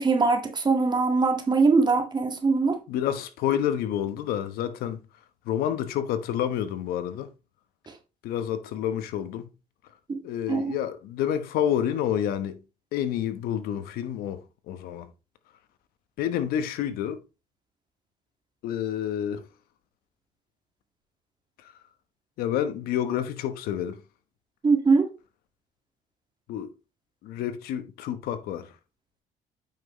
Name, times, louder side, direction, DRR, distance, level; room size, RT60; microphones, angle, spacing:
voice 1, 0.0-2.8 10.1-10.2 10.5-10.8 24.6-25.1, right 4 dB, 30° right, 1.9 m, -22 dB
voice 2, 2.9-5.0 5.4-7.3 8.2-9.5 10.2-12.6 12.9-15.1 16.2-17.2 18.6-19.5 21.6-21.7 22.4-24.0 26.5-26.7 27.2-28.7, left 10 dB, 80° left, 1.1 m, -29 dB
8.8 x 6.0 x 3.1 m
cardioid pair, 100°, 15 cm